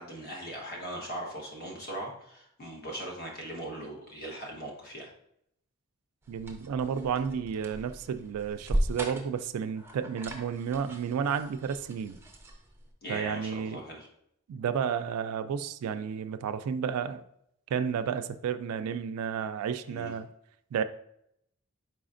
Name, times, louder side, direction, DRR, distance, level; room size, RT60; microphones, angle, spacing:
voice 1, 0.0-5.1 13.0-14.1 19.9-20.1, right 1 dB, 45° left, -1 dB, 1.1 m, -39 dB
sound 1, 6.2-12.9, right 1 dB, 10° right, 0.5 m, -37 dB
voice 2, 6.3-12.2 13.1-13.8 14.5-17.2 17.7-20.3 20.7-20.8, right 7 dB, 75° right, 14 dB, 0.3 m, -32 dB
4.4 x 4.1 x 2.5 m, 0.73 s
head